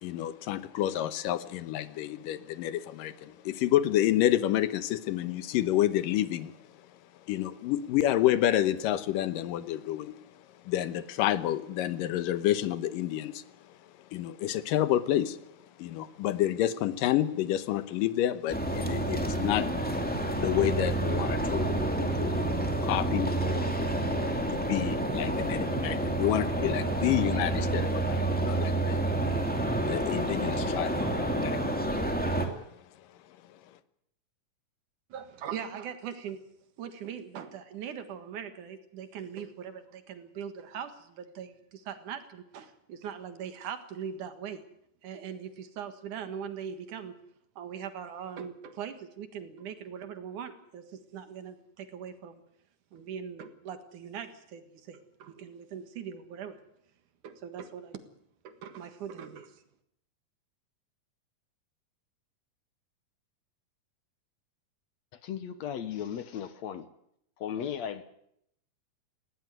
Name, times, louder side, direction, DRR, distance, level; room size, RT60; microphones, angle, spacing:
voice 1, 0.0-6.5 7.3-10.2 10.6-13.4 14.1-15.4 15.8-20.0 20.3-22.4 22.8-29.0 29.9-31.8, left 13 dB, 90° left, 13 dB, 2.6 m, -29 dB
sound 1, 18.5-32.5, right 2 dB, 5° left, 1.9 m, -29 dB
voice 2, 35.1-36.4 36.8-44.6 45.0-47.2 47.6-52.4 52.9-56.6 57.2-58.0 58.4-59.6, right 8 dB, 70° right, 9 dB, 3.0 m, -41 dB
voice 3, 65.2-66.9 67.4-68.0, left 9 dB, 65° left, 12 dB, 2.0 m, -36 dB
18.5 x 17.5 x 9.2 m, 0.74 s
omnidirectional pair, 3.8 m